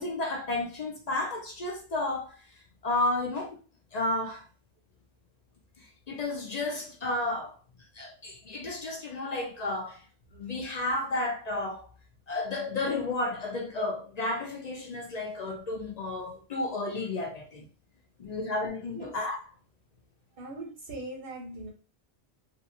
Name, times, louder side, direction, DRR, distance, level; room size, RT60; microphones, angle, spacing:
voice 1, 0.0-2.3 2.8-3.6 3.9-4.4 5.8-7.6 7.9-10.0 10.3-11.8 12.3-17.7 18.2-19.4, left 2 dB, 55° left, 0.4 m, -32 dB
voice 2, 20.4-21.7, right 2 dB, 60° right, 0.7 m, -40 dB
2.7 x 2.4 x 2.4 m
omnidirectional pair, 1.2 m